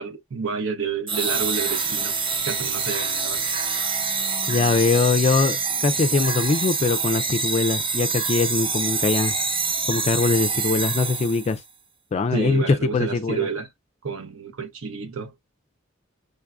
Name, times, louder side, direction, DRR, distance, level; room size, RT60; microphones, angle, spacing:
voice 1, 0.0-2.1 2.5-3.4 12.3-13.7 14.0-15.3, right 5 dB, 75° right, 0.7 m, -29 dB
sound 1, 1.1-11.6, right 5 dB, 25° right, 0.5 m, -26 dB
voice 2, 4.5-9.4 9.9-11.6 12.1-13.5, left 4 dB, 30° left, 0.3 m, -22 dB
6.6 x 2.3 x 2.3 m
head